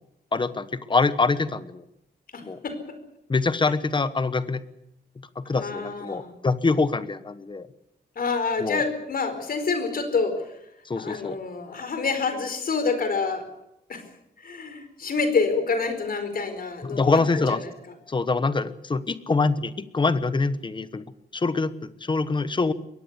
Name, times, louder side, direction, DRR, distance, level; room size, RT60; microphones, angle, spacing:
voice 1, 0.3-1.8 2.4-2.6 3.3-4.6 5.4-7.7 8.6-8.8 10.8-11.4 16.8-17.6 18.1-22.7, left 3 dB, 25° left, 13 dB, 1.2 m, -25 dB
voice 2, 2.3-2.8 5.5-6.3 8.1-10.6 11.0-13.4 13.9-14.0 14.4-17.7, left 4 dB, 55° left, 9 dB, 4.6 m, -27 dB
22.0 x 18.0 x 8.2 m, 0.82 s
wide cardioid pair, 170°, 18 cm